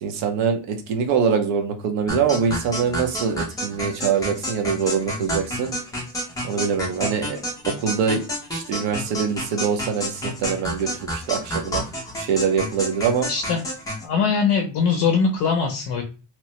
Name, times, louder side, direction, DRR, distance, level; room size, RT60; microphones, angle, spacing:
voice 1, 0.0-5.8 6.4-7.4 7.7-8.2 8.5-11.8 12.2-13.3, right 6 dB, 70° right, 5 dB, 0.8 m, -24 dB
sound 1, 2.1-14.0, equal, 10° left, 0.4 m, -30 dB
voice 2, 13.3-13.6 14.0-16.0, left 5 dB, 50° left, 2 dB, 0.6 m, -21 dB
3.0 x 2.1 x 2.8 m, 0.33 s
cardioid pair, 165°, 50 cm